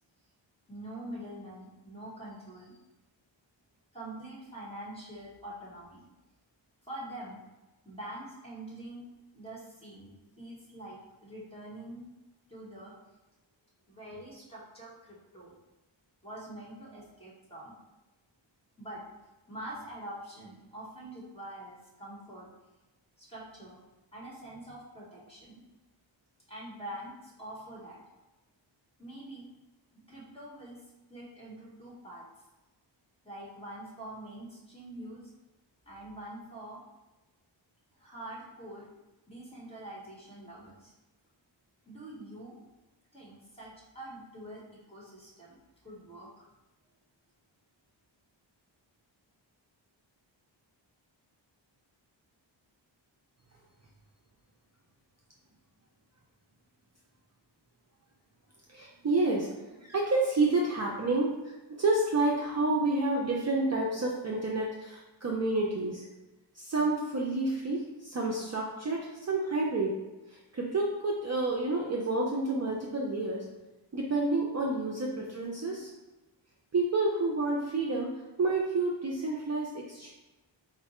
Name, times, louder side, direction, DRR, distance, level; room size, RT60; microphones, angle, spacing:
voice 1, 0.7-2.8 3.9-6.1 6.8-7.4 7.8-9.0 9.3-10.1 10.4-12.1 12.5-12.9 13.9-15.5 16.2-17.7 18.8-19.0 19.5-22.5 23.2-23.8 24.1-25.6 26.5-28.0 29.0-29.5 29.9-30.8 31.1-32.2 33.2-35.3 35.8-36.8 38.0-38.9 39.3-40.9 41.8-42.6 43.1-43.7 43.9-45.6 45.8-46.5, right 1 dB, 10° left, -6 dB, 1.4 m, -45 dB
voice 2, 58.7-59.5 59.8-61.3 61.8-66.1 66.6-70.0 70.3-73.4 73.9-75.9 76.7-78.1 78.4-80.1, right 2 dB, 35° right, -2 dB, 0.5 m, -29 dB
4.4 x 2.1 x 4.2 m, 1.1 s
wide cardioid pair, 110°, 47 cm